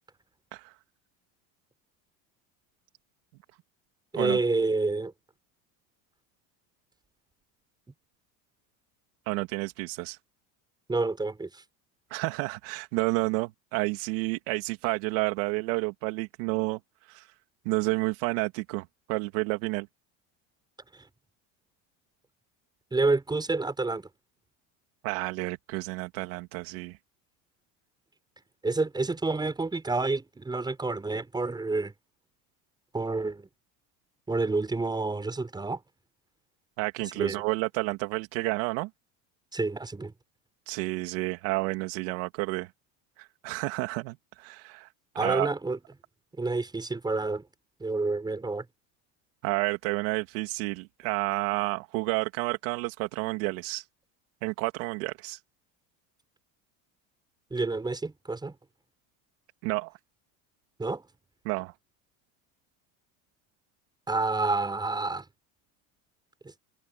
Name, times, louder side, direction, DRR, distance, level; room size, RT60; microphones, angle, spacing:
voice 1, 4.1-5.1 10.9-11.6 20.9-21.0 22.9-24.1 28.6-31.9 32.9-33.5 34.3-35.8 37.1-37.4 39.5-40.1 45.1-45.8 46.3-47.4 47.8-48.7 57.5-58.5 60.8-61.0 64.1-65.2 66.4-66.5, right 3 dB, 10° right, 6.1 m, -28 dB
voice 2, 9.3-10.2 12.1-17.3 17.6-19.9 25.0-27.0 36.8-38.9 40.7-42.7 43.2-45.5 49.4-53.9 54.4-55.4 59.6-59.9 61.4-61.7, right 24 dB, 75° right, 2.7 m, -30 dB
cardioid pair, 145°, 38 cm